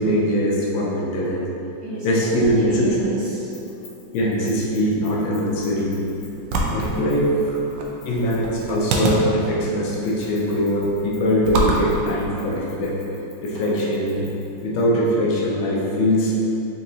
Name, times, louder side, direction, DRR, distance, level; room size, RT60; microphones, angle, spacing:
voice 1, 0.0-1.5 2.0-3.0 4.1-5.9 6.7-7.3 8.1-12.9 13.4-14.3 14.6-16.3, equal, 80° left, -4 dB, 1.5 m, -22 dB
voice 2, 1.8-3.5 6.9-7.9 13.5-13.6, right 1 dB, 60° right, -9 dB, 1.3 m, -32 dB
Keys jangling, 3.5-9.2 10.0-14.8, left 4 dB, 60° left, 1.3 m, -49 dB
sound 1, 5.4-13.0, right 1 dB, 75° right, 1.2 m, -28 dB
4.1 x 3.7 x 2.7 m, 2.9 s
omnidirectional pair, 2.2 m